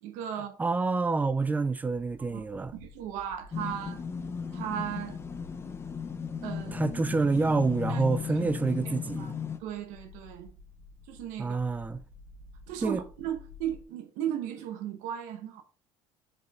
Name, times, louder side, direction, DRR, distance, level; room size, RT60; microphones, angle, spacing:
voice 1, 0.0-0.6 2.3-2.4 2.7-4.0 4.5-5.2 6.4-6.8 7.9-8.0 8.3-8.5 9.2-9.3 9.6-10.5 11.1-11.6 12.7-15.6, right 10 dB, 80° right, 1.1 m, -36 dB
voice 2, 0.6-2.7 6.7-9.4 11.4-12.0 12.8-13.0, right 4 dB, 15° right, 0.4 m, -27 dB
sound 1, 1.9-13.8, left 2 dB, 45° right, 2.0 m, -53 dB
sound 2, 3.5-9.6, left 7 dB, 20° left, 0.7 m, -36 dB
6.1 x 5.3 x 3.5 m
cardioid pair, 150°, 13 cm